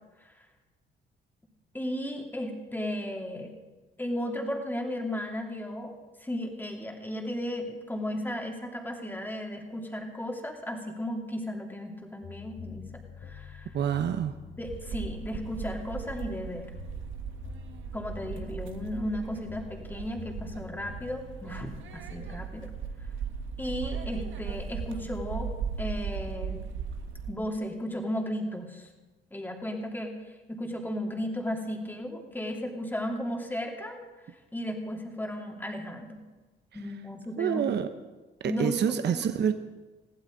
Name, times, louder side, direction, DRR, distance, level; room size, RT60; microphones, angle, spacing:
voice 1, 1.7-3.5 4.0-5.9 6.2-12.9 13.2-13.7 14.6-16.7 17.9-22.7 23.6-25.5 25.8-26.6 27.3-28.9 29.3-30.2 30.5-34.0 34.5-36.2 36.7-37.6 38.4-39.3, left 1 dB, 10° left, 1 dB, 2.9 m, -35 dB
sound 1, 12.2-22.8, left 7 dB, 60° left, 2.9 m, -47 dB
voice 2, 13.7-14.3 37.4-37.9 38.4-39.5, right 8 dB, 60° right, 9 dB, 0.9 m, -27 dB
sound 2, 14.7-27.3, right 6 dB, 75° right, 1.5 m, -38 dB
22.0 x 15.0 x 4.0 m, 1.2 s
cardioid pair, 90°, 20 cm